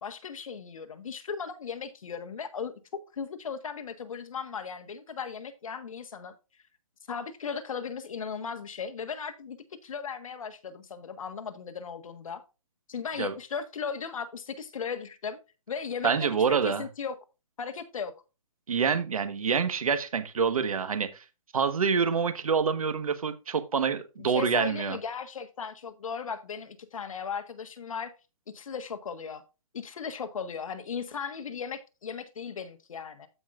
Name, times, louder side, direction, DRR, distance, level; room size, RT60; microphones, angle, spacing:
voice 1, 0.0-2.7 3.1-6.3 7.1-12.4 12.9-15.4 15.7-17.1 17.6-18.1 24.2-28.1 28.5-29.4 29.7-33.3, left 6 dB, 70° left, 1.5 m, -37 dB
voice 2, 16.0-16.8 18.7-21.2 21.5-25.0, right 6 dB, 85° right, 1.4 m, -26 dB
14.5 x 5.6 x 2.5 m
hypercardioid pair, 160°, 18 cm